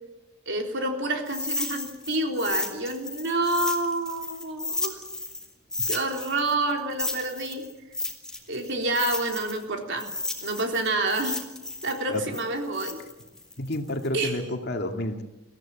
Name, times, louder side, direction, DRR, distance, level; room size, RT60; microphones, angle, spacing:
voice 1, 0.5-5.0 5.9-7.6 8.5-10.1 10.4-11.4 11.8-13.0 14.1-14.3, right 2 dB, 55° right, 3 dB, 3.7 m, -28 dB
sound 1, 1.2-5.4 5.7-9.6 10.0-14.1, left 2 dB, 5° left, 2.7 m, -33 dB
voice 2, 12.1-12.4 13.6-15.2, left 1 dB, 50° left, 5 dB, 2.2 m, -30 dB
22.5 x 15.5 x 9.0 m, 1.0 s
head